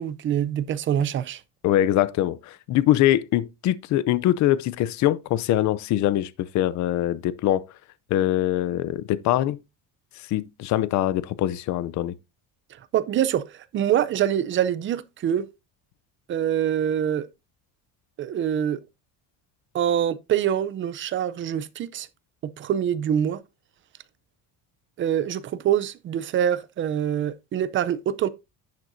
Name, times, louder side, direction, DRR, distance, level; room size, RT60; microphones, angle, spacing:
voice 1, 0.0-1.4 12.7-15.5 16.3-17.3 18.2-18.8 19.7-22.1 22.4-23.4 25.0-28.3, right 10 dB, 30° right, 0.4 m, -25 dB
voice 2, 1.6-7.6 8.1-9.6 10.2-12.1, left 13 dB, 45° left, 0.5 m, -23 dB
10.5 x 7.5 x 2.6 m
cardioid pair, 170°, 41 cm